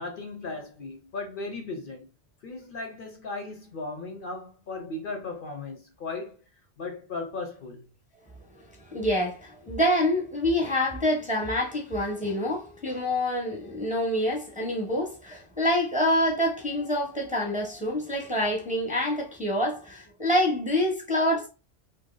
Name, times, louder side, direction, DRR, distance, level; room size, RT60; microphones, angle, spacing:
voice 1, 0.0-2.1 2.4-6.4 6.8-7.8, left 3 dB, 55° left, 0.7 m, -36 dB
voice 2, 8.5-21.5, left 1 dB, 10° right, 0.8 m, -26 dB
2.8 x 2.7 x 3.8 m
omnidirectional pair, 1.2 m